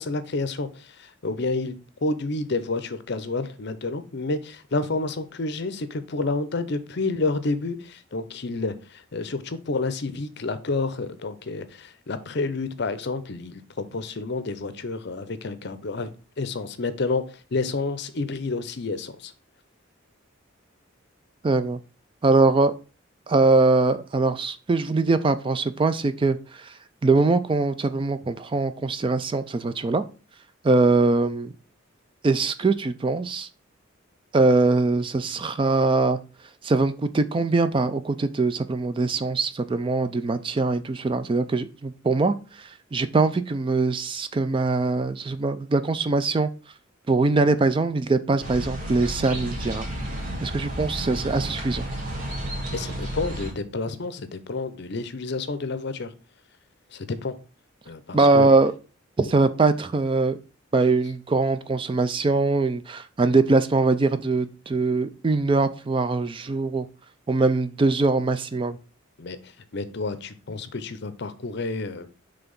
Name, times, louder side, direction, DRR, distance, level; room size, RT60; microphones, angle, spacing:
voice 1, 0.0-1.8 2.0-16.1 16.4-19.3 52.7-56.1 56.9-57.3 57.9-58.5 59.2-59.3 69.2-72.1, left 3 dB, 55° left, 12 dB, 0.6 m, -29 dB
voice 2, 21.4-21.8 22.2-22.7 23.3-26.7 27.0-30.0 30.6-31.5 32.2-33.5 34.3-36.2 36.6-46.5 47.1-49.9 50.4-51.9 58.1-58.7 59.2-60.4 60.7-66.9 67.3-68.8, right 3 dB, 25° right, 12 dB, 0.3 m, -22 dB
sound 1, 48.4-53.5, right 1 dB, 40° right, 1.7 m, -32 dB
5.9 x 3.4 x 5.2 m, 0.34 s
head